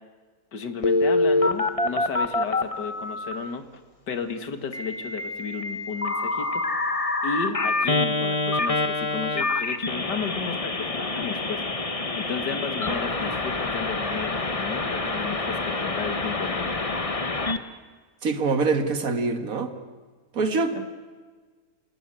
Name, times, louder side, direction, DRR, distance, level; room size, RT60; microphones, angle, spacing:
voice 1, 0.5-3.7 4.1-6.6 7.2-11.6 12.2-16.7 20.5-20.9, left 5 dB, 85° left, 8 dB, 2.4 m, -33 dB
Telephone, 0.8-3.3 4.7-17.6, left 2 dB, 25° left, 1.1 m, -26 dB
voice 2, 18.2-19.7 20.3-20.9, right 4 dB, 55° right, 7 dB, 2.2 m, -24 dB
28.0 x 18.0 x 8.9 m, 1.5 s
omnidirectional pair, 1.8 m